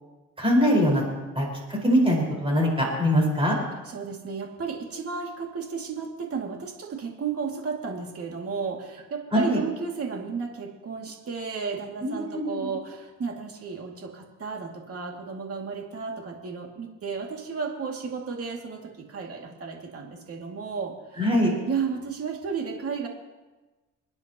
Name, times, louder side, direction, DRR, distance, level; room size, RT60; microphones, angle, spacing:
voice 1, 0.4-1.0 1.4-1.5 1.8-3.6 9.3-9.6 12.0-12.7 21.2-21.5, equal, 20° right, -2 dB, 5.3 m, -22 dB
voice 2, 3.8-21.3 21.7-23.1, right 5 dB, 50° right, 1 dB, 2.6 m, -33 dB
29.0 x 9.9 x 3.1 m, 1.2 s
cardioid pair, 90°, 30 cm